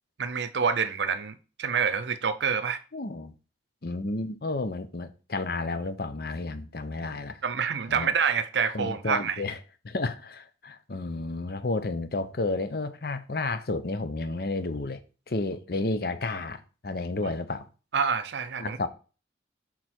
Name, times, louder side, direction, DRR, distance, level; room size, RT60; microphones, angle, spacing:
voice 1, 0.2-2.8 7.4-9.4 17.2-17.3 17.9-18.9, right 6 dB, 80° right, 0.6 m, -27 dB
voice 2, 2.9-3.3 3.8-7.4 7.9-8.1 8.7-9.6 9.8-15.0 15.3-17.7 18.6-18.9, left 2 dB, 55° left, 0.7 m, -31 dB
6.4 x 4.0 x 4.4 m
head